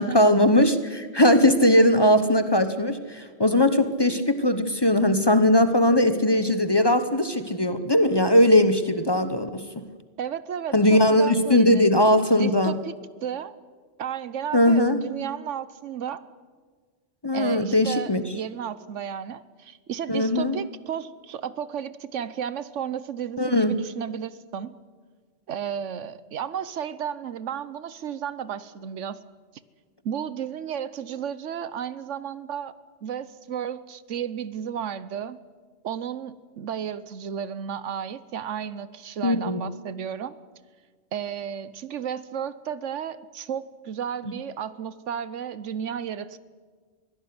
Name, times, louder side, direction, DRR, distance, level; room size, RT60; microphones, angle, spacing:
voice 1, 0.0-9.9 10.7-12.7 14.5-15.0 17.2-18.3 20.1-20.6 23.4-23.8 39.2-39.6, left 1 dB, 20° left, 10 dB, 1.0 m, -20 dB
voice 2, 10.2-11.9 12.3-12.9 13.2-13.5 14.0-16.2 17.3-24.8 25.5-29.2 30.0-32.7 33.0-35.4 35.8-40.4 41.1-46.4, right 8 dB, 75° right, 16 dB, 1.2 m, -33 dB
23.0 x 17.0 x 9.6 m, 1.5 s
omnidirectional pair, 1.3 m